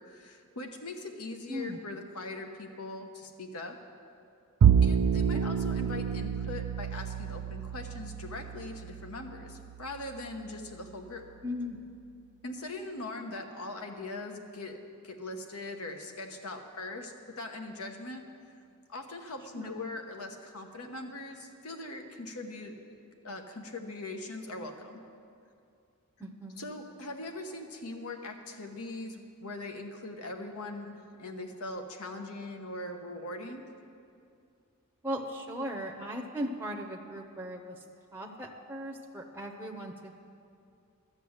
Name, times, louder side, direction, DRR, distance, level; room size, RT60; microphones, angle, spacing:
voice 1, 0.1-3.8 4.8-11.2 12.4-14.8 15.0-18.2 18.9-22.7 23.2-25.0 26.6-33.6, left 2 dB, 80° left, 4 dB, 1.1 m, -41 dB
voice 2, 1.5-1.8 5.3-5.4 11.4-11.8 19.5-19.9 26.2-26.7 35.0-37.8 38.1-40.2, equal, 10° right, 1 dB, 0.7 m, -38 dB
Bowed string instrument, 4.6-11.0, right 8 dB, 80° right, 0.4 m, -29 dB
12.0 x 6.9 x 7.9 m, 2.4 s
head